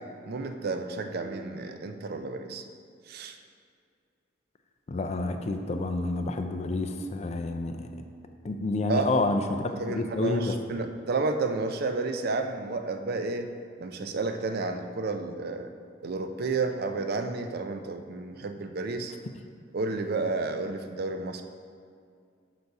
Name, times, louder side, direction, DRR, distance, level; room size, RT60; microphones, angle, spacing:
voice 1, 0.0-2.6 3.1-3.4 8.9-9.2 9.7-13.5 13.8-15.7 16.0-19.1 19.7-21.4, right 3 dB, 50° right, 7 dB, 0.4 m, -31 dB
voice 2, 4.9-8.0 8.4-10.5, left 2 dB, 35° left, 6 dB, 0.4 m, -29 dB
6.6 x 4.1 x 4.6 m, 2.3 s
head